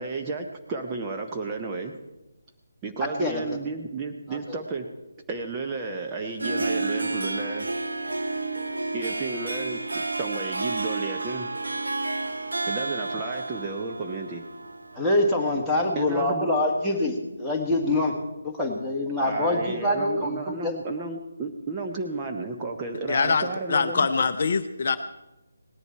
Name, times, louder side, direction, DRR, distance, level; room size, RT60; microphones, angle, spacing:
voice 1, 0.0-2.0 2.8-4.9 5.3-7.7 8.9-11.5 12.7-14.4 16.0-16.6 19.2-24.1, right 3 dB, 15° right, 1 dB, 0.8 m, -32 dB
voice 2, 3.0-3.6 4.3-4.4 14.9-18.1 18.4-20.8, left 1 dB, ahead, -7 dB, 1.6 m, -25 dB
Harp, 6.2-15.0, right 2 dB, 65° right, 0.9 m, -31 dB
voice 3, 23.1-25.0, left 5 dB, 45° left, 9 dB, 0.6 m, -24 dB
18.0 x 11.0 x 4.6 m, 1.0 s
figure-of-eight pair, 150°, 0 cm